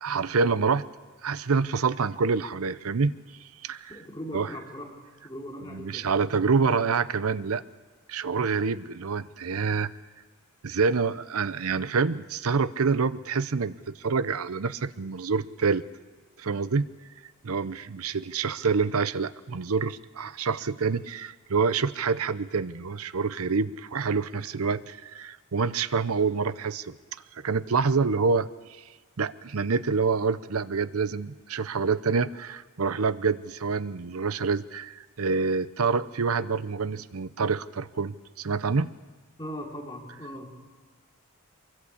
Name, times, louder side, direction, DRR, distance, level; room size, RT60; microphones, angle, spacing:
voice 1, 0.0-0.9 1.2-3.2 3.6-4.0 4.3-4.6 5.6-7.6 8.1-9.9 10.6-15.8 16.4-16.9 17.4-26.9 27.4-28.5 29.2-38.9, right 5 dB, 75° right, 15 dB, 0.7 m, -27 dB
voice 2, 3.9-4.9 5.2-6.1 39.4-40.6, equal, 20° left, -1 dB, 3.4 m, -39 dB
23.5 x 23.0 x 8.4 m, 1.4 s
head